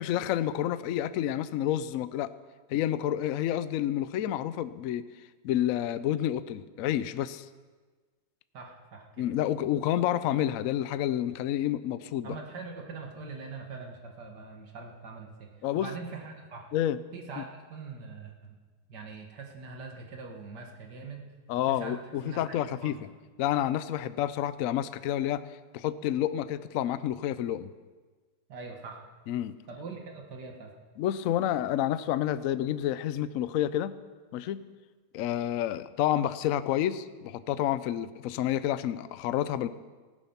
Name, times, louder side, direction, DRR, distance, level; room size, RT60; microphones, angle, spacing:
voice 1, 0.0-2.3 2.7-5.0 5.4-7.5 9.2-12.3 15.6-15.9 16.7-17.0 21.5-23.1 23.4-25.4 25.7-27.7 29.3-29.5 31.0-34.0 34.3-34.6 35.1-39.7, left 12 dB, 85° left, 14 dB, 0.7 m, -29 dB
voice 2, 8.5-9.3 12.2-16.7 17.1-18.6 18.9-21.3 21.6-22.0 22.2-23.0 28.5-29.0 29.7-30.7, right 4 dB, 65° right, 2 dB, 2.1 m, -43 dB
15.5 x 9.2 x 5.8 m, 1.4 s
omnidirectional pair, 2.0 m